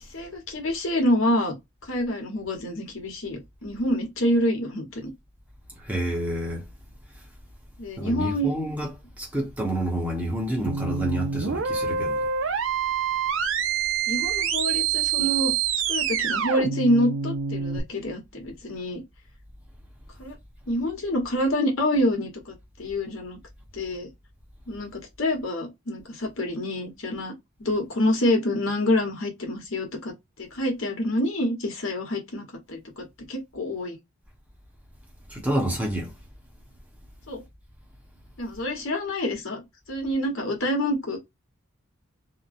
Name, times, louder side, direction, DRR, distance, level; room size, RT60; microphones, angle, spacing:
voice 1, 0.1-1.5 1.9-5.0 7.8-8.5 14.1-15.5 15.9-19.0 20.2-20.3 20.7-23.4 23.7-24.1 24.7-24.9 25.2-27.3 27.6-30.1 30.4-34.0 37.3-37.4 38.4-39.6 39.9-41.2, left 1 dB, 75° left, 1.1 m, -27 dB
voice 2, 5.9-6.6 8.0-8.9 9.2-12.3 35.3-36.1, right 1 dB, 5° right, 0.9 m, -28 dB
sound 1, 10.7-17.8, right 7 dB, 65° right, 0.5 m, -26 dB
2.9 x 2.1 x 2.5 m
head